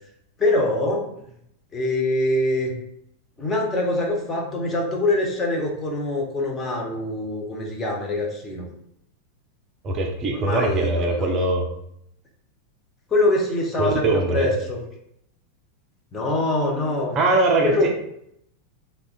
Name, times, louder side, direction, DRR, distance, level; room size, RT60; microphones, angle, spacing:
voice 1, 0.4-1.1 1.7-2.7 3.4-8.7 10.3-11.3 13.1-14.8 16.1-17.2 17.6-17.9, left 2 dB, 20° left, 0 dB, 0.6 m, -24 dB
voice 2, 9.8-11.6 13.8-14.5 17.2-17.9, right 2 dB, 30° right, 2 dB, 0.4 m, -21 dB
3.5 x 2.1 x 2.3 m, 0.74 s
figure-of-eight pair, 90°, 0 cm